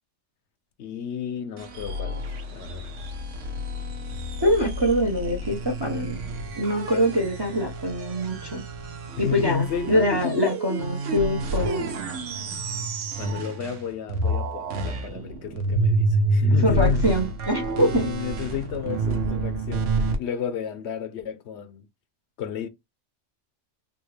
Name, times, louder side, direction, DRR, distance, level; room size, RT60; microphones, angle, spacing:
voice 1, 0.8-2.9 9.2-10.5 13.2-17.2 17.8-21.9 22.4-22.7, left 8 dB, 70° left, 0.8 m, -32 dB
sound 1, 1.6-13.8 14.1-20.2, right 2 dB, 90° right, 1.1 m, -28 dB
voice 2, 4.4-6.2 6.6-8.6 9.2-11.9 16.6-18.1, equal, 30° right, 0.5 m, -24 dB
3.5 x 2.4 x 3.1 m
omnidirectional pair, 1.2 m